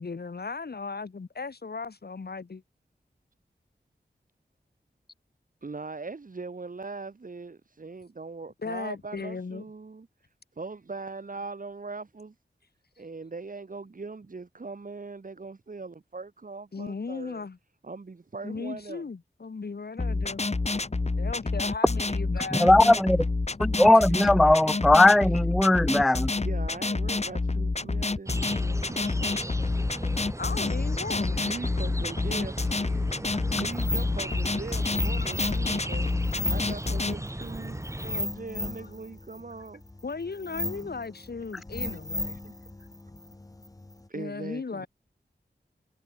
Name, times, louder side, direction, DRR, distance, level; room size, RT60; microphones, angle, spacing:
voice 1, 0.0-2.6 8.6-9.6 16.7-17.6 18.4-20.4 21.2-23.0 30.4-31.5 35.2-35.4 38.8-38.9 40.0-42.4 44.1-44.9, left 4 dB, 65° left, 2.1 m, -36 dB
voice 2, 5.6-10.1 10.6-12.3 13.0-17.4 17.8-19.1 24.1-24.2 24.6-25.2 25.9-26.1 26.4-29.4 31.5-33.1 33.5-36.2 36.5-39.8 42.4-42.5 44.1-44.9, right 3 dB, 50° right, 1.7 m, -40 dB
sound 1, 20.0-37.1, left 3 dB, 40° left, 1.5 m, -28 dB
voice 3, 22.6-23.2 23.6-26.3, left 1 dB, ahead, 0.3 m, -19 dB
sound 2, 28.3-38.2, right 1 dB, 15° right, 3.5 m, -37 dB
sound 3, 33.6-44.1, left 2 dB, 20° left, 1.0 m, -36 dB
wide cardioid pair, 75°, 18 cm